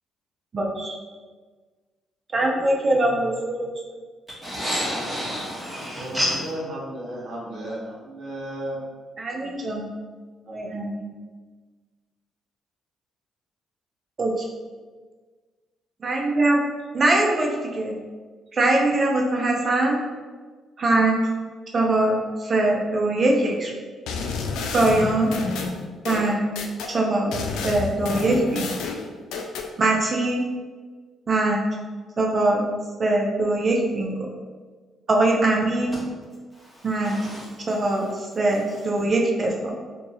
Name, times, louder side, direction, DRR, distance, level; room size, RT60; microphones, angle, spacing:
voice 1, 0.5-1.0 2.3-3.7 9.2-9.8 10.5-11.0 14.2-14.4 16.0-16.6 16.9-18.0 18.5-20.0 20.8-21.3 21.7-23.7 24.7-25.3 26.0-26.5 26.9-27.3 27.6-28.7 29.8-30.4 31.3-31.7 32.2-32.6 33.0-34.1 35.1-36.0 36.8-37.3 37.7-39.7, right 2 dB, 40° right, 0 dB, 0.5 m, -22 dB
voice 2, 4.4-6.5 35.9-36.0 36.5-37.5, equal, 5° right, -7 dB, 1.3 m, -29 dB
voice 3, 5.6-8.8, right 1 dB, 65° right, -6 dB, 1.0 m, -34 dB
sound 1, 24.1-26.9 27.3-29.7, left 4 dB, 90° left, 0.4 m, -30 dB
2.7 x 2.6 x 3.9 m, 1.4 s
cardioid pair, 90°, 0 cm